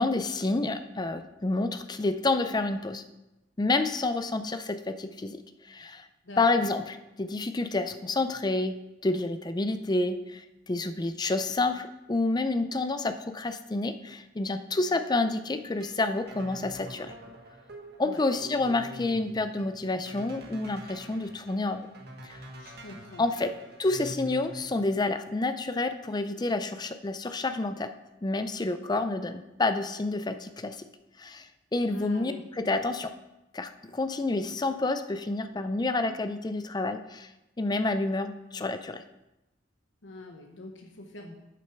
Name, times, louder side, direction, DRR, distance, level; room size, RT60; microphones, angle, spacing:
voice 1, 0.0-3.0 3.6-6.1 6.4-8.8 9.0-17.1 18.0-21.9 22.2-22.4 23.2-23.5 23.8-27.9 28.2-30.8 31.2-33.1 33.5-37.3 37.6-39.0, left 2 dB, 20° left, 9 dB, 0.5 m, -29 dB
voice 2, 6.2-6.7 18.0-18.2 22.6-23.4 31.9-32.4 40.0-41.4, left 2 dB, 80° left, 3 dB, 1.0 m, -44 dB
sound 1, 15.5-24.9, equal, 55° right, 1.5 m, -45 dB
8.5 x 6.4 x 5.9 m, 0.97 s
head